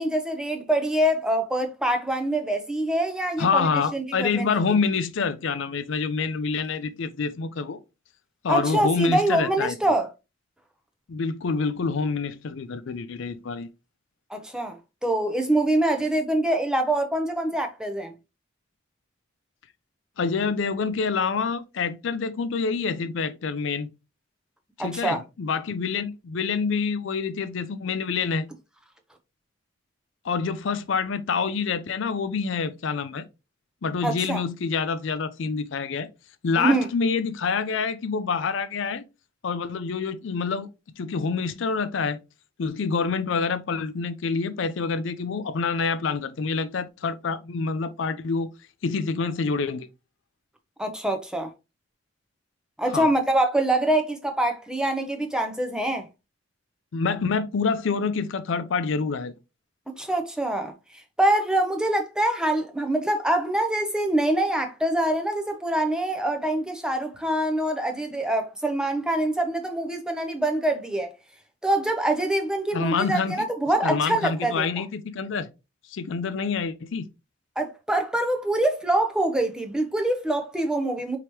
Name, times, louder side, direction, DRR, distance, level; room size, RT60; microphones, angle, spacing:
voice 1, 0.0-4.6 8.5-10.1 14.3-14.8 15.0-18.1 24.8-25.2 34.0-34.4 36.6-36.9 50.8-51.5 52.8-56.1 60.0-60.7 61.2-71.1 71.6-74.8 77.6-81.2, right 1 dB, 5° right, 0.6 m, -25 dB
voice 2, 3.4-7.8 8.4-9.8 11.1-13.7 20.2-23.9 24.8-28.5 30.2-33.2 33.8-36.1 36.4-39.0 39.4-40.7 41.0-42.2 42.6-48.5 48.8-49.9 52.9-53.1 56.9-59.3 72.7-73.5 73.8-75.5 75.9-77.1, left 5 dB, 65° left, 0.4 m, -27 dB
4.8 x 2.9 x 3.0 m
head